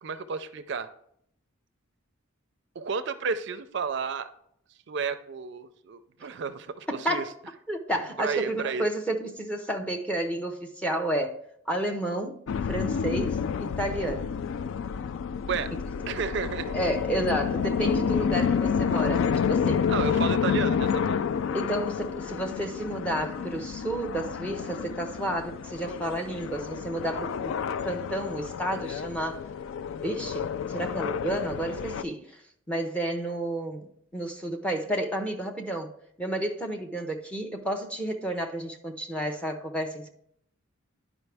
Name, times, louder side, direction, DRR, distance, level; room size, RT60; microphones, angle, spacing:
voice 1, 0.0-0.9 2.8-4.3 4.9-7.3 8.2-8.9 15.5-15.7 16.1-16.7 19.9-21.2, right 5 dB, 55° right, 0.4 m, -32 dB
voice 2, 6.9-7.3 7.7-11.4 11.7-14.3 16.7-19.9 21.5-27.5 27.8-29.4 30.0-32.4 32.7-35.9 36.2-40.1, right 1 dB, 5° left, 0.7 m, -31 dB
sound 1, 12.5-32.0, left 6 dB, 70° left, 0.3 m, -29 dB
10.5 x 5.0 x 3.4 m
head